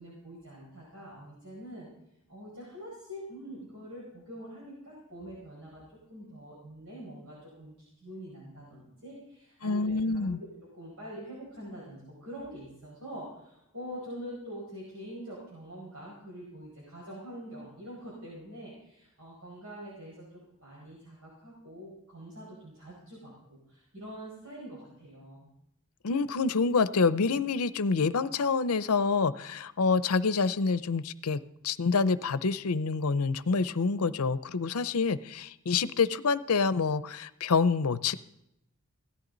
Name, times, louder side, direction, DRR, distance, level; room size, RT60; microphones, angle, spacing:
voice 1, 0.0-1.9 2.3-10.4 10.7-25.5, equal, 75° right, -5 dB, 5.3 m, -45 dB
voice 2, 9.6-10.4 26.0-38.1, left 4 dB, 80° left, 15 dB, 0.6 m, -27 dB
17.0 x 14.0 x 4.0 m, 0.83 s
head